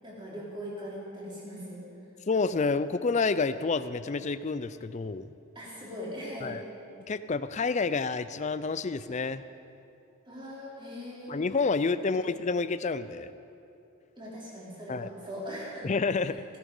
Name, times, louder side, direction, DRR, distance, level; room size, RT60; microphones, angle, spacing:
voice 1, 0.0-1.8 5.6-6.6 10.3-11.3 12.2-12.3 14.2-15.9 16.2-16.4, equal, 20° right, -6 dB, 3.5 m, -40 dB
voice 2, 2.3-5.3 6.4-6.6 7.1-9.4 11.3-13.3 14.9-15.1 15.8-16.4, left 4 dB, 30° left, 14 dB, 0.4 m, -29 dB
17.0 x 12.5 x 5.4 m, 2.7 s
head